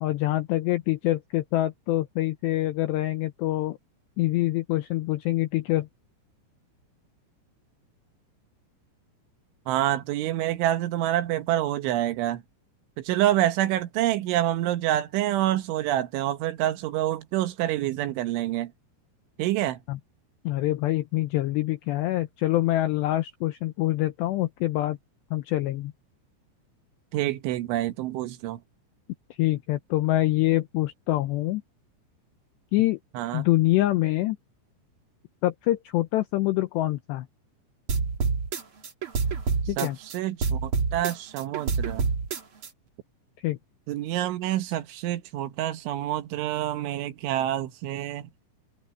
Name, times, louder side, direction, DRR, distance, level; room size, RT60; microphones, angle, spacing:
voice 1, 0.0-3.8 4.2-5.9 19.9-20.0 20.4-25.0 25.3-25.9 29.4-31.6 32.7-33.0 33.3-34.4 35.4-37.3 39.7-40.0 43.4-43.6, left 16 dB, 85° left, 2.5 m, -25 dB
voice 2, 9.7-12.4 13.0-18.7 19.4-19.8 27.1-28.6 33.2-33.5 39.8-42.0 43.9-48.3, right 13 dB, 75° right, 3.4 m, -27 dB
sound 1, 37.9-40.2 40.4-42.7, right 5 dB, 55° right, 1.4 m, -27 dB
omnidirectional pair, 5.9 m